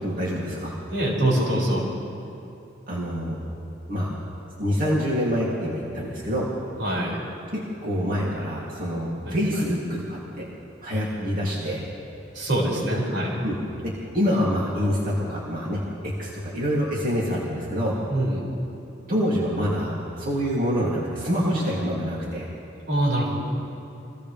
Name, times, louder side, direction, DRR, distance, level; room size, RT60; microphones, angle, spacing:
voice 1, 0.0-0.7 2.9-3.4 3.9-4.1 4.6-6.5 7.5-10.4 10.8-11.8 13.4-13.6 13.8-18.0 19.1-22.5, equal, 45° right, -6 dB, 3.0 m, -26 dB
voice 2, 0.9-1.9 6.8-7.2 9.2-9.4 12.3-13.4 18.1-18.4 22.9-23.3, right 1 dB, 85° right, -4 dB, 6.6 m, -24 dB
30.0 x 24.5 x 3.5 m, 2.8 s
head